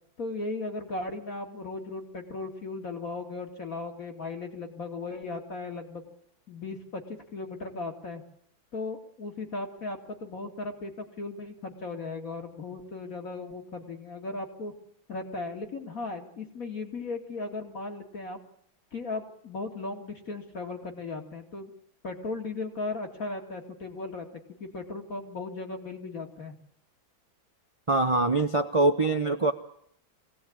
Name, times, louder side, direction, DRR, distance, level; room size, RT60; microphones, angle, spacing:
voice 1, 0.2-6.0 6.5-7.0 7.3-8.2 8.7-14.7 15.1-18.4 18.9-21.7 22.0-24.3 24.6-26.5, left 3 dB, 45° left, 3 dB, 2.8 m, -36 dB
voice 2, 27.9-29.5, right 2 dB, 50° right, 7 dB, 0.3 m, -23 dB
23.5 x 17.5 x 8.7 m, 0.70 s
omnidirectional pair, 2.1 m